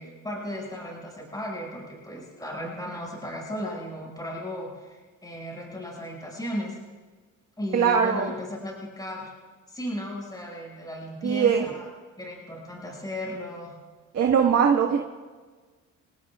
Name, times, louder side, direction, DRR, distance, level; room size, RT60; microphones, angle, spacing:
voice 1, 0.0-6.8 7.6-9.3 9.7-11.9 12.2-13.8, equal, 15° left, -2 dB, 6.4 m, -35 dB
voice 2, 7.7-8.3 11.2-11.7 14.1-15.0, right 7 dB, 55° right, 0 dB, 1.7 m, -21 dB
28.0 x 17.0 x 2.5 m, 1.4 s
cardioid pair, 90°, 30 cm